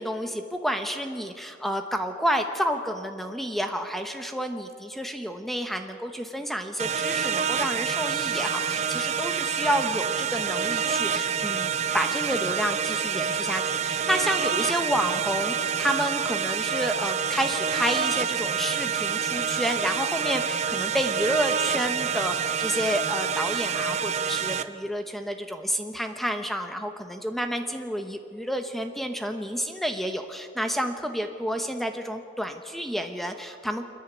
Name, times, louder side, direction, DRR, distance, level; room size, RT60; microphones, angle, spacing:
voice 1, 0.0-33.9, equal, ahead, 6 dB, 1.0 m, -30 dB
sound 1, 6.8-24.6, right 7 dB, 40° right, 0.6 m, -27 dB
28.0 x 10.0 x 9.5 m, 2.4 s
head